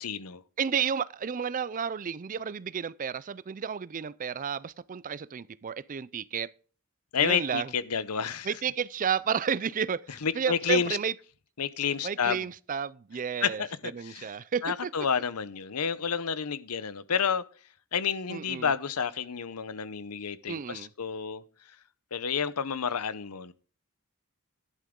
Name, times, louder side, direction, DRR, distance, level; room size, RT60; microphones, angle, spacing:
voice 1, 0.0-0.4 7.1-8.5 10.2-11.0 11.6-12.4 13.4-14.3 14.6-17.4 17.9-21.4 22.1-23.5, left 6 dB, 90° left, 0.8 m, -30 dB
voice 2, 0.6-6.5 7.2-7.7 8.4-11.1 12.0-13.6 13.9-14.9 18.3-18.7 20.5-20.9, right 7 dB, 35° right, 0.4 m, -32 dB
11.5 x 11.0 x 3.7 m
head